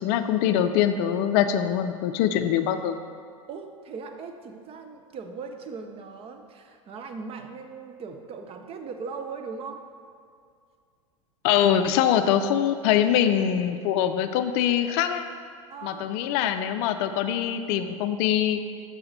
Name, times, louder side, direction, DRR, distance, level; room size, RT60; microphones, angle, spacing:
voice 1, 0.0-3.0 11.4-15.3 15.8-18.6, left 10 dB, 50° left, 9 dB, 0.4 m, -23 dB
voice 2, 3.5-9.8 15.7-16.1, right 5 dB, 35° right, 6 dB, 0.6 m, -39 dB
6.2 x 5.8 x 3.9 m, 2.2 s
hypercardioid pair, 95°, 18 cm